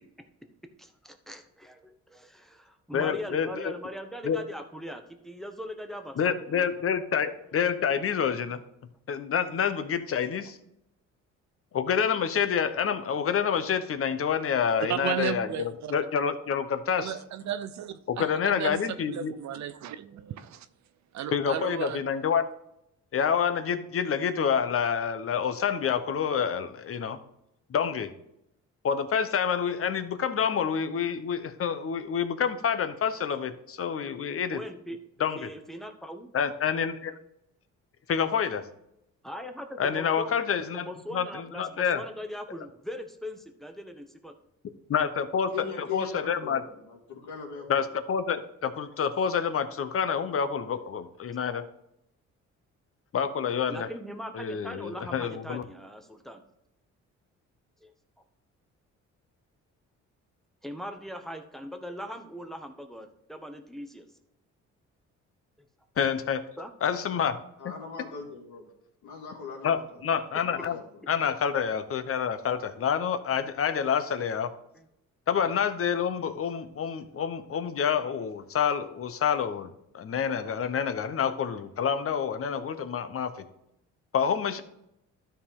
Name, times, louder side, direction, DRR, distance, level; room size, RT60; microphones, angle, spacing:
voice 1, 0.8-6.7 34.5-35.0 35.3-36.3 39.2-40.3 40.8-44.3 53.7-56.4 57.8-57.9 60.6-64.1 66.6-66.7 74.7-74.9, equal, ahead, 1.0 m, -40 dB
voice 2, 2.9-3.7 4.2-4.4 6.2-8.6 9.1-10.6 11.7-17.1 18.1-19.3 21.3-22.4 23.1-27.2 27.7-28.1 28.8-34.6 35.2-35.5 36.3-37.1 38.1-38.6 39.8-42.0 44.9-45.5 45.8-46.6 47.7-51.6 53.1-53.9 54.3-55.6 66.0-66.4 66.8-67.4 69.6-70.8 71.1-74.5 75.3-83.3 84.1-84.6, left 7 dB, 50° left, 0.9 m, -28 dB
voice 3, 14.9-15.9 17.0-20.7 21.1-22.0, right 10 dB, 65° right, 0.6 m, -34 dB
voice 4, 45.5-47.8 67.6-68.7 69.0-70.0 70.4-71.1, left 5 dB, 75° left, 2.6 m, -40 dB
12.5 x 4.5 x 3.7 m
cardioid pair, 90°, 30 cm